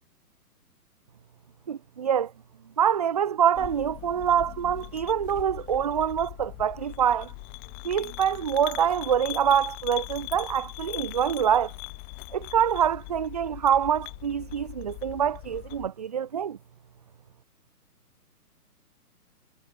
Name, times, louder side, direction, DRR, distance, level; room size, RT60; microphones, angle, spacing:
voice 1, 1.7-2.3 2.8-7.3 7.8-11.7 12.3-16.6, right 8 dB, 25° right, 1.0 m, -25 dB
sound 1, 3.5-15.9, left 40 dB or more, 15° left, 5.6 m, -40 dB
hypercardioid pair, 175°, 47 cm